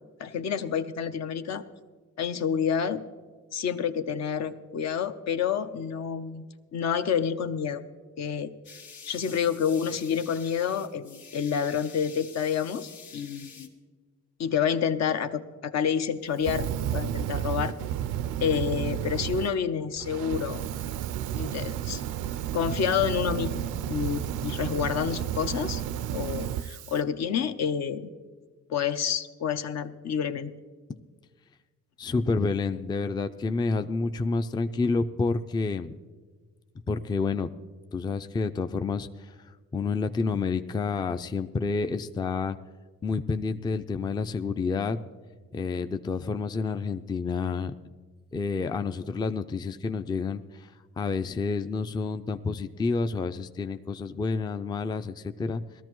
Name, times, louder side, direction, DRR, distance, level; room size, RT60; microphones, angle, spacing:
voice 1, 0.2-1.6 2.2-3.0 3.5-6.5 6.7-7.8 8.2-8.5 9.1-13.7 14.4-17.7 18.4-20.6 21.3-22.0 22.5-25.8 26.1-28.1 28.7-30.5, left 7 dB, 60° left, 9 dB, 0.7 m, -28 dB
sound 1, 8.6-13.7, left 6 dB, 75° left, 1.9 m, -48 dB
Fire, 16.4-19.5 20.0-27.0, right 11 dB, 80° right, 0.5 m, -32 dB
voice 2, 32.0-36.0 36.9-37.5 37.9-39.4 39.7-42.6 43.0-45.0 45.5-47.7 48.3-55.6, left 4 dB, 15° left, 10 dB, 0.4 m, -29 dB
18.5 x 13.0 x 3.0 m, 1.5 s
cardioid pair, 90°, 30 cm